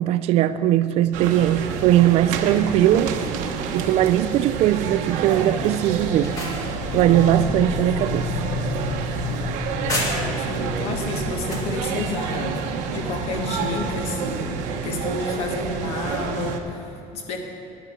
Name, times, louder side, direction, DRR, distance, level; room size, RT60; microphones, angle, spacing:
voice 1, 0.0-3.1 3.7-6.3 6.9-8.3, right 12 dB, 55° right, 0.4 m, -19 dB
sound 1, 1.1-16.6, right 6 dB, 80° right, 1.0 m, -29 dB
voice 2, 2.6-3.0 3.4-3.6 10.1-12.6 12.9-17.4, left 3 dB, 55° left, 1.6 m, -31 dB
sound 2, 5.4-15.6, left 5 dB, 70° left, 0.7 m, -33 dB
sound 3, 6.0-10.6 11.0-11.7, left 1 dB, 30° left, 1.9 m, -34 dB
10.5 x 10.0 x 6.1 m
cardioid pair, 175°, 13 cm